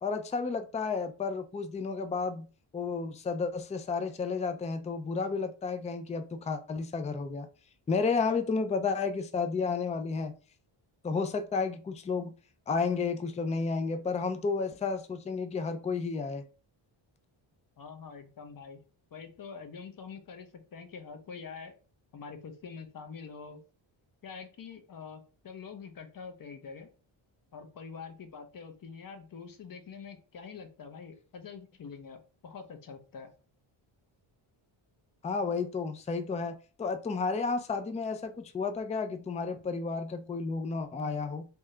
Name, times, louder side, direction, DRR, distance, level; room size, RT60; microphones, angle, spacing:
voice 1, 0.0-2.5 2.7-7.5 7.9-10.3 11.0-12.3 12.7-16.4 35.2-41.5, left 4 dB, 15° left, 0.3 m, -32 dB
voice 2, 17.8-18.8 19.1-21.7 22.1-23.6 24.2-26.9 27.5-33.3, left 5 dB, 40° left, 0.8 m, -45 dB
3.6 x 2.7 x 3.2 m
cardioid pair, 100°, 50 cm